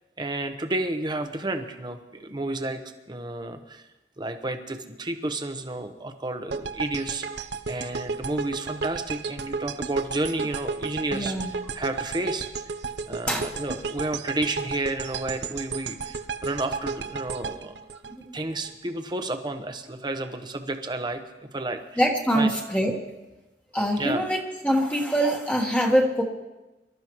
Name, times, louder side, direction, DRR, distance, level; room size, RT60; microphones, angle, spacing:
voice 1, 0.2-2.8 3.1-3.8 4.2-11.3 11.7-12.5 13.1-17.8 18.3-21.2 21.5-21.8 22.3-22.5 24.0-24.3, right 2 dB, 25° right, 7 dB, 1.0 m, -31 dB
sound 1, 6.5-18.7, right 4 dB, 70° right, 0.7 m, -33 dB
voice 2, 11.1-11.5 13.3-13.5 18.0-18.3 22.0-23.0 23.7-26.2, equal, 5° left, -1 dB, 1.4 m, -24 dB
24.5 x 12.5 x 3.1 m, 1.0 s
head